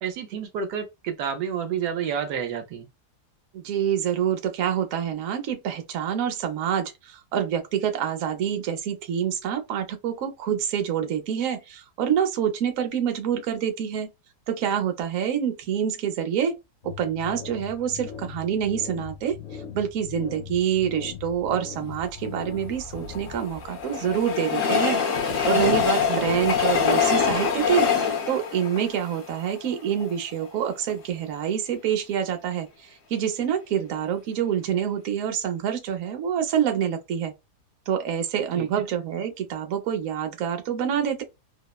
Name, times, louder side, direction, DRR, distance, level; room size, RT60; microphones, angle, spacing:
voice 1, 0.0-2.9 26.1-26.3 38.6-38.9, right 8 dB, 85° right, 1.2 m, -30 dB
voice 2, 3.5-14.1 14.5-16.6 16.8-19.4 19.7-27.9 28.3-37.3 37.9-41.2, right 9 dB, 65° right, 0.9 m, -26 dB
sound 1, 16.8-25.0, left 7 dB, 85° left, 0.5 m, -41 dB
Train, 22.8-30.1 30.6-30.7 30.9-31.0, left 6 dB, 60° left, 0.9 m, -24 dB
2.9 x 2.0 x 2.2 m
omnidirectional pair, 1.7 m